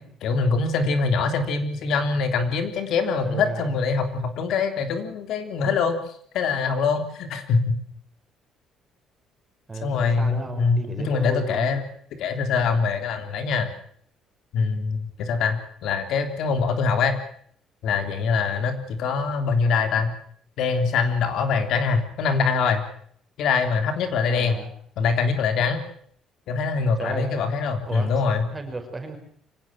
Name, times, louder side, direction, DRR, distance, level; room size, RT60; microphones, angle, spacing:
voice 1, 0.2-6.0 6.3-7.8 9.8-11.8 12.2-13.7 14.5-17.2 17.8-20.1 20.6-22.8 23.4-24.6 25.0-25.8 26.5-28.4, left 5 dB, 60° left, 7 dB, 3.3 m, -23 dB
voice 2, 3.2-3.7 9.7-11.7 24.3-24.7 27.0-27.3 27.9-28.1 28.5-29.2, right 3 dB, 15° right, 5 dB, 5.3 m, -33 dB
25.5 x 18.0 x 7.5 m, 0.62 s
cardioid pair, 165°, 0 cm